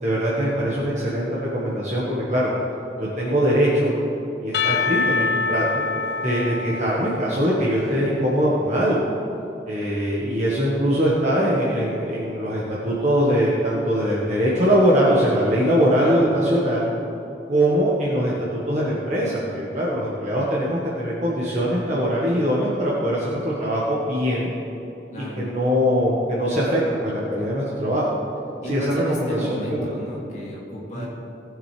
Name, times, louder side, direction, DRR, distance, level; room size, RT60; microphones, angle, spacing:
voice 1, 0.0-2.5 3.0-3.9 4.4-5.8 6.2-9.1 9.7-16.9 17.5-18.3 18.7-24.5 25.2-28.2 28.6-29.9 30.9-31.1, equal, 40° right, -6 dB, 1.5 m, -22 dB
Percussion / Church bell, 4.5-8.2, left 4 dB, 65° left, 0.5 m, -26 dB
voice 2, 4.6-5.0 15.9-16.4 25.1-25.5 28.6-31.1, equal, 40° left, -5 dB, 2.5 m, -33 dB
18.5 x 7.3 x 3.4 m, 3.0 s
head